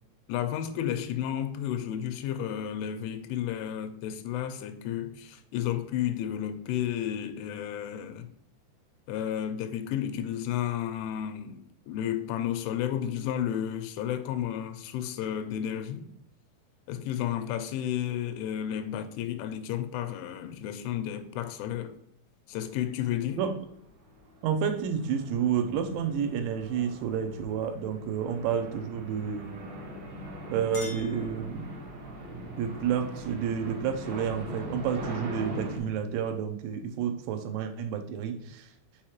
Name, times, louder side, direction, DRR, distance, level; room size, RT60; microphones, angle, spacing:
voice 1, 0.3-8.3 9.1-16.1 16.9-21.9 22.5-23.5, left 10 dB, 90° left, 3.1 m, -32 dB
sound 1, 22.8-23.0 23.5-35.8, right 1 dB, 65° right, 1.7 m, -41 dB
voice 2, 24.4-29.6 30.5-31.7 32.6-38.7, right 7 dB, 90° right, 3.1 m, -30 dB
Chink clink, 30.2-32.0, left 2 dB, 70° left, 1.0 m, -46 dB
7.4 x 4.8 x 2.9 m
omnidirectional pair, 5.4 m